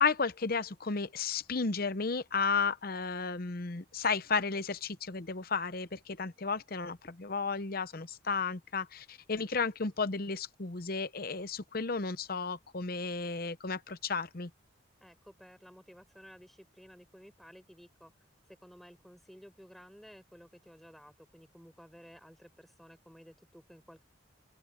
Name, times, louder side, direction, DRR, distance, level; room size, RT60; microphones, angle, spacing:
voice 1, 0.0-14.5, left 4 dB, 45° left, 0.8 m, -33 dB
voice 2, 15.0-18.1 18.5-24.0, equal, ahead, 7.1 m, -55 dB
open air
head